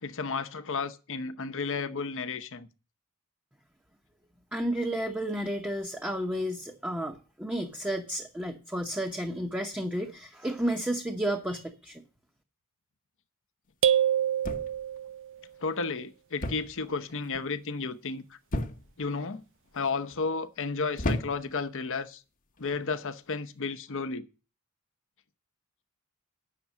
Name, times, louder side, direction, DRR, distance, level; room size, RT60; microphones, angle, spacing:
voice 1, 0.0-2.7 15.6-18.4 19.0-19.4 19.7-22.2 22.6-24.3, left 4 dB, 60° left, 0.9 m, -33 dB
voice 2, 4.5-12.0, right 1 dB, 5° right, 0.9 m, -32 dB
sound 1, 13.8-15.3, right 9 dB, 60° right, 0.5 m, -26 dB
sound 2, 14.4-15.0 16.4-16.8 17.1-17.5 18.5-19.1 19.8-20.2 21.0-21.6 22.6-22.8, left 1 dB, 40° left, 1.1 m, -33 dB
9.2 x 6.6 x 7.2 m
head